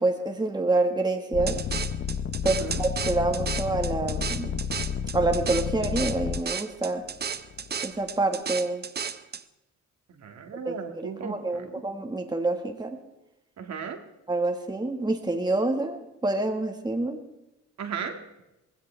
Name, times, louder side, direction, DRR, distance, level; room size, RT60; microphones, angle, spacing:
voice 1, 0.0-1.6 2.4-4.6 5.1-7.0 7.8-8.8 10.6-13.0 14.3-17.2, right 2 dB, 15° right, 4 dB, 1.6 m, -27 dB
sound 1, 1.3-6.4 7.1-7.8, left 7 dB, 40° left, 0.6 m, -31 dB
sound 2, 1.5-9.4, right 6 dB, 35° right, 0.8 m, -34 dB
voice 2, 10.2-11.8 13.6-14.0 17.8-18.2, right 6 dB, 65° right, 5 dB, 2.0 m, -36 dB
18.5 x 16.0 x 3.4 m, 0.95 s
cardioid pair, 90°, 30 cm